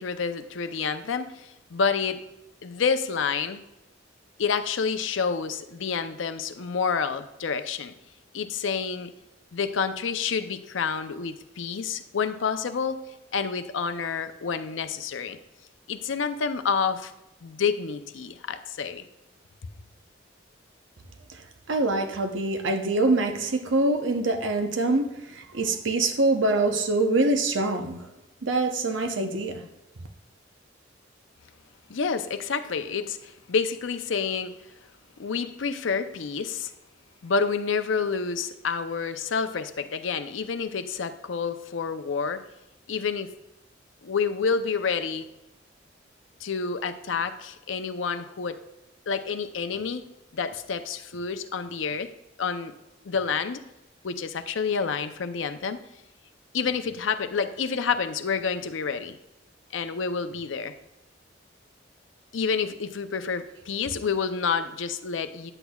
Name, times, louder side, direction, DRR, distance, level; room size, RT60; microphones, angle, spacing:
voice 1, 0.0-2.2 2.6-3.6 4.4-7.9 8.3-9.1 9.5-13.0 13.3-15.4 15.9-17.1 17.4-19.0 31.9-34.5 35.2-36.7 37.2-42.4 42.9-43.3 44.0-45.2 46.4-48.6 49.1-50.0 50.3-52.1 52.4-52.7 53.0-53.6 54.0-55.8 56.5-59.2 59.7-60.7 62.3-65.5, left 5 dB, 80° left, 0.5 m, -28 dB
voice 2, 21.7-28.1 28.4-29.6, right 2 dB, 80° right, 0.8 m, -25 dB
9.8 x 8.0 x 2.3 m
head